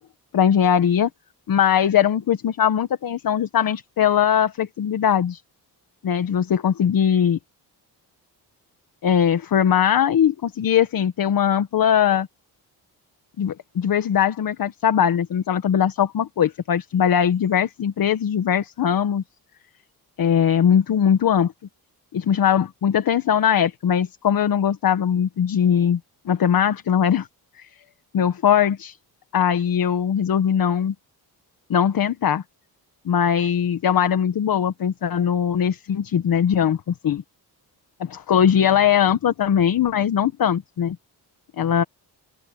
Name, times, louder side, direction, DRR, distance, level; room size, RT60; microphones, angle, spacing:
voice 1, 0.3-1.1 1.5-5.4 6.0-7.4 9.0-12.3 13.4-19.2 20.2-21.5 22.1-26.0 26.2-27.3 27.6-27.7 28.1-29.0 29.3-30.9 31.7-32.4 33.0-37.2 38.0-41.0 41.6-41.8, left 8 dB, 60° left, 1.4 m, -20 dB
open air
cardioid pair, 130°, 40 cm